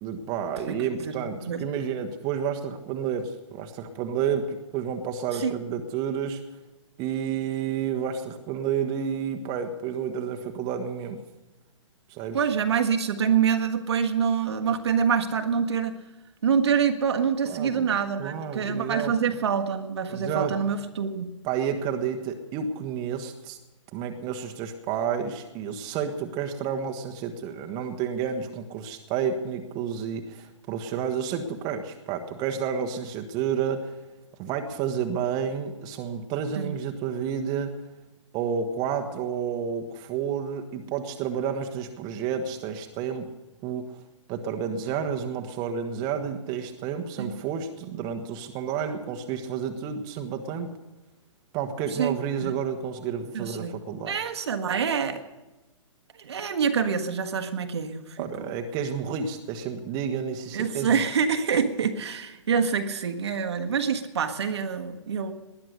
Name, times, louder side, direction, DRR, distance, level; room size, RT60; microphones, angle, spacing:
voice 1, 0.0-6.4 7.0-11.2 12.1-12.4 17.4-17.9 18.2-19.4 20.1-20.5 21.4-23.6 23.9-34.0 34.4-37.8 38.3-43.3 43.6-44.0 44.3-50.8 51.5-54.2 58.2-60.9, right 7 dB, 25° right, 5 dB, 1.3 m, -30 dB
voice 2, 1.0-1.6 5.3-5.6 12.3-16.0 16.4-21.3 36.6-36.7 47.2-47.3 52.0-52.5 53.3-53.7 54.1-55.2 56.2-58.5 60.5-65.3, right 7 dB, 55° right, 6 dB, 1.5 m, -26 dB
19.5 x 11.0 x 6.6 m, 1.1 s
figure-of-eight pair, 120°, 17 cm